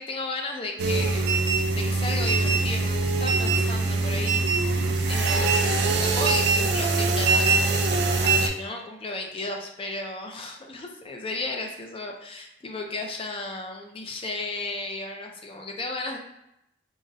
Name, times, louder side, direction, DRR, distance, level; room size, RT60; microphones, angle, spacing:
voice 1, 0.0-1.4 1.7-16.2, left 2 dB, 30° left, 2 dB, 0.4 m, -34 dB
sound 1, 0.8-8.5, right 3 dB, 65° right, 0.4 m, -23 dB
3.8 x 2.0 x 2.5 m, 0.83 s
head